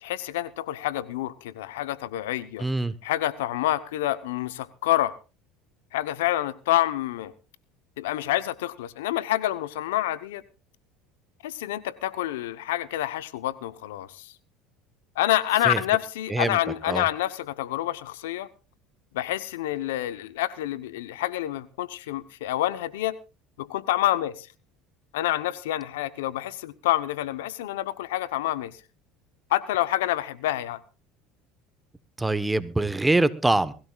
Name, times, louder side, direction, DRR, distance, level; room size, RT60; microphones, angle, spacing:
voice 1, 0.0-2.6 3.0-5.2 5.9-7.3 8.0-10.4 11.4-14.3 15.2-18.5 19.1-23.2 23.6-24.5 25.1-28.7 29.5-30.8, left 14 dB, 85° left, 15 dB, 0.9 m, -27 dB
voice 2, 2.6-2.9 15.6-15.8 16.3-16.6 16.8-17.0 32.2-33.7, right 2 dB, 10° right, 14 dB, 1.1 m, -24 dB
22.5 x 16.0 x 2.4 m, 0.31 s
supercardioid pair, 95°, 0 cm